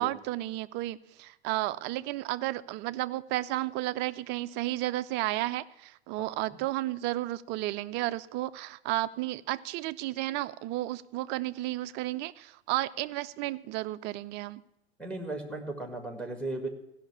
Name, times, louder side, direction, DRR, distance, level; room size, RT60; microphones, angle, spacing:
voice 1, 0.0-14.6, right 16 dB, 35° right, 0.5 m, -32 dB
voice 2, 15.0-16.7, right 2 dB, 5° left, 1.9 m, -36 dB
15.5 x 5.8 x 8.6 m
hypercardioid pair, 95°, 32 cm